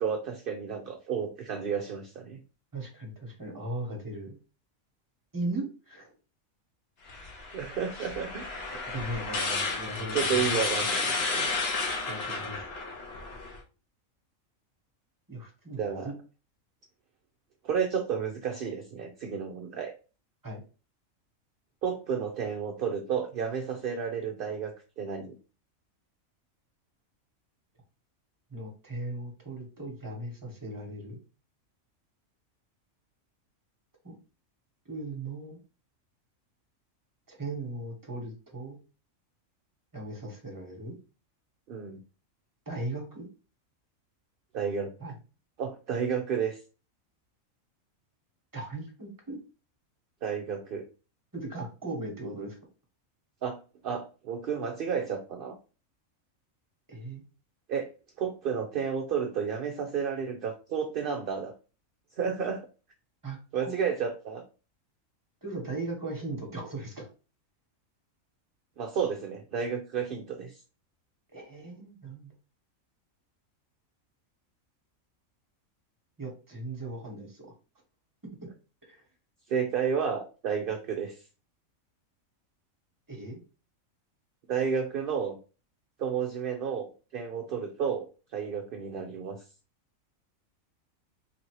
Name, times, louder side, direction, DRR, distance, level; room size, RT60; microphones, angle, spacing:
voice 1, 0.0-2.4 7.5-8.7 10.1-11.5 15.8-16.1 17.6-19.9 21.8-25.4 41.7-42.0 44.5-44.9 45.6-46.6 50.2-50.8 53.4-55.6 57.7-57.9 58.2-61.5 62.2-62.7 63.5-64.4 68.8-70.5 79.5-81.2 84.5-85.4 86.0-88.0 88.3-89.4, right 7 dB, 60° right, 3 dB, 0.6 m, -31 dB
voice 2, 2.7-4.4 5.3-6.1 8.9-10.6 12.1-12.6 15.3-16.1 20.4-20.6 28.5-31.2 34.0-34.1 34.9-35.6 37.3-38.8 39.9-40.9 42.7-43.3 45.0-45.1 48.5-49.4 51.3-52.6 56.9-57.2 63.2-63.9 65.4-67.1 71.3-72.3 76.2-77.5 78.9-79.0 83.1-83.4, right 2 dB, 15° right, 1 dB, 1.1 m, -38 dB
sound 1, 7.1-13.6, left 3 dB, 55° left, 1.0 m, -32 dB
3.1 x 2.7 x 4.5 m, 0.34 s
omnidirectional pair, 1.4 m